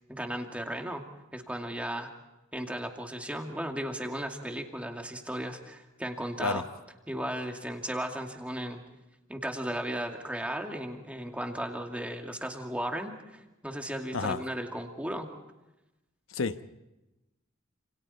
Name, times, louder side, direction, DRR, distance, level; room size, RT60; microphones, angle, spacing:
voice 1, 0.1-1.0 1.3-2.1 2.5-6.6 7.1-8.8 9.3-15.3, right 1 dB, 5° right, 3 dB, 2.4 m, -35 dB
voice 2, 14.1-14.4 16.3-16.7, left 4 dB, 80° left, 10 dB, 1.1 m, -30 dB
30.0 x 28.0 x 4.3 m, 0.98 s
head